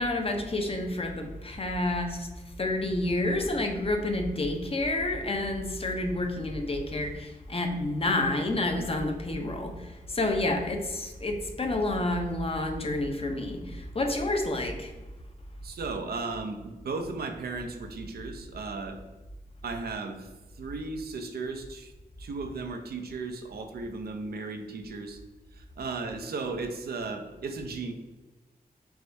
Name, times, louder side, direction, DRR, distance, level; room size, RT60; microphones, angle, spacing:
voice 1, 0.0-2.3 2.6-14.9, left 2 dB, 40° left, 4 dB, 0.7 m, -29 dB
voice 2, 15.6-19.0 19.6-21.9 22.2-25.2 25.5-27.9, right 3 dB, 90° right, 5 dB, 0.6 m, -36 dB
4.7 x 3.2 x 2.6 m, 1.1 s
cardioid pair, 60°, 16 cm